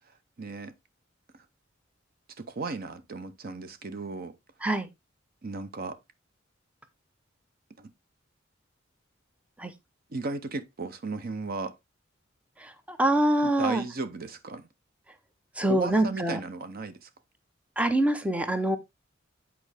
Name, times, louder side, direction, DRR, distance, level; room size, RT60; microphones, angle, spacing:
voice 1, 0.4-0.7 2.4-4.4 5.4-6.0 7.8-7.9 10.1-11.7 13.4-14.7 15.7-17.1, right 3 dB, 50° right, 0.7 m, -35 dB
voice 2, 12.6-13.8 15.6-16.4 17.8-18.8, right 1 dB, 5° right, 0.7 m, -25 dB
8.5 x 4.6 x 3.3 m
head